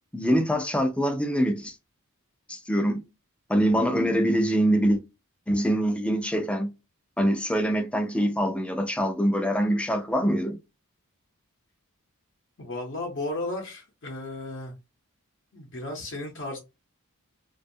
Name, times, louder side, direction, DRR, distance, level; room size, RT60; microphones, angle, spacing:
voice 1, 0.1-1.8 2.5-3.0 3.5-5.0 5.5-6.7 7.2-10.6, equal, 5° left, 0.3 m, -24 dB
voice 2, 12.6-14.7 15.5-16.6, left 2 dB, 55° left, 0.6 m, -34 dB
2.5 x 2.2 x 2.6 m
head